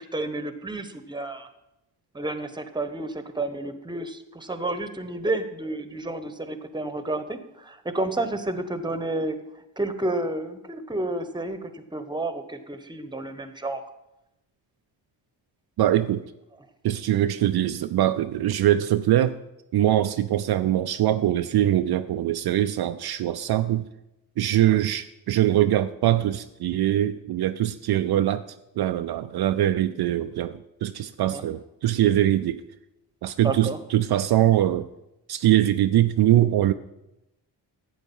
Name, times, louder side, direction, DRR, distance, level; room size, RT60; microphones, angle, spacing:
voice 1, 0.0-1.5 2.1-9.4 9.8-13.8 31.3-31.4 33.4-33.8, right 2 dB, 10° right, 1.0 m, -30 dB
voice 2, 15.8-16.2 16.8-19.4 19.7-23.9 24.4-28.4 28.8-32.6 33.2-34.9 35.3-36.7, right 12 dB, 60° right, 0.5 m, -22 dB
11.0 x 7.9 x 5.5 m
cardioid pair, 80°, 43 cm